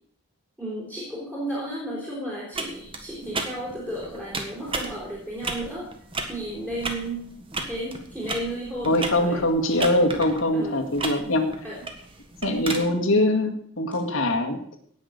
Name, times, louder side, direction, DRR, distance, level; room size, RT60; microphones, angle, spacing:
voice 1, 0.6-5.9 6.2-9.5 10.5-10.8 11.6-11.8, right 1 dB, 10° right, -6 dB, 4.2 m, -33 dB
sound 1, 2.5-12.8, right 3 dB, 25° right, 1.5 m, -35 dB
voice 2, 8.8-11.5 12.4-14.6, left 1 dB, 75° left, 2 dB, 2.1 m, -23 dB
17.5 x 6.4 x 6.6 m, 0.63 s
head